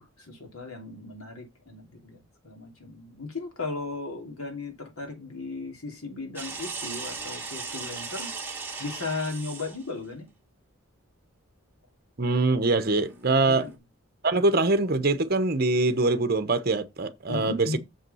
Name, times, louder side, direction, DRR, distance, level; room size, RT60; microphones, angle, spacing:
voice 1, 0.0-8.3 8.8-10.3 13.5-13.7 17.3-17.8, left 3 dB, 85° left, 3.0 m, -36 dB
sound 1, 6.4-9.9 12.8-13.8, right 4 dB, 10° right, 1.7 m, -37 dB
voice 2, 12.2-13.7 14.2-17.7, right 2 dB, 45° right, 0.9 m, -23 dB
7.1 x 5.7 x 5.5 m
head